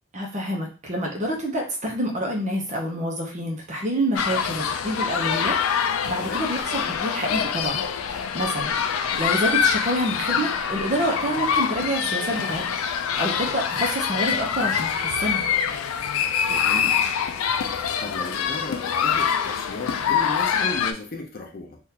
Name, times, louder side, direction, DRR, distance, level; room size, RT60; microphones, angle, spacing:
voice 1, 0.1-5.6 6.1-8.7 9.1-15.5, right 1 dB, 35° right, 1 dB, 0.7 m, -28 dB
sound 1, 4.2-20.9, left 7 dB, 85° left, 0.4 m, -25 dB
voice 2, 16.4-17.0 17.7-21.8, left 2 dB, 45° left, 2 dB, 0.6 m, -35 dB
3.6 x 2.5 x 2.8 m, 0.36 s
head